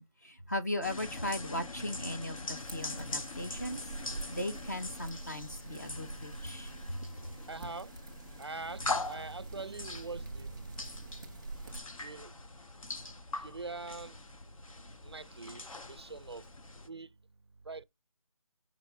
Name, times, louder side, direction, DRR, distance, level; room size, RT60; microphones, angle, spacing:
voice 1, 0.0-3.8 4.3-6.7, left 1 dB, 30° left, 0.6 m, -37 dB
sound 1, 0.8-16.9, left 2 dB, 70° left, 1.1 m, -42 dB
sound 2, 2.7-11.8, right 3 dB, 10° right, 0.7 m, -47 dB
voice 2, 7.5-7.9 8.4-11.1 12.0-12.3 13.4-14.2 15.0-16.4 16.9-17.1 17.7-17.8, right 3 dB, 50° right, 0.4 m, -43 dB
6.9 x 4.9 x 3.5 m
figure-of-eight pair, 180°, 18 cm